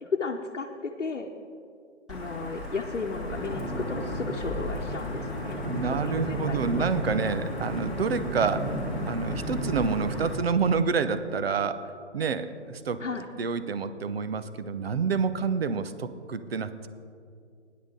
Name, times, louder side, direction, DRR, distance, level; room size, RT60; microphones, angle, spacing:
voice 1, 0.0-1.3 2.1-5.6 6.0-6.9 13.0-13.3, left 4 dB, 85° left, 0 dB, 1.0 m, -34 dB
Wind / Thunder / Rain, 2.1-10.3, equal, ahead, 1.5 m, -33 dB
voice 2, 5.7-8.8 9.0-13.0 13.4-16.9, right 5 dB, 55° right, 12 dB, 0.8 m, -28 dB
18.5 x 10.5 x 3.8 m, 2.4 s
figure-of-eight pair, 145°, 35 cm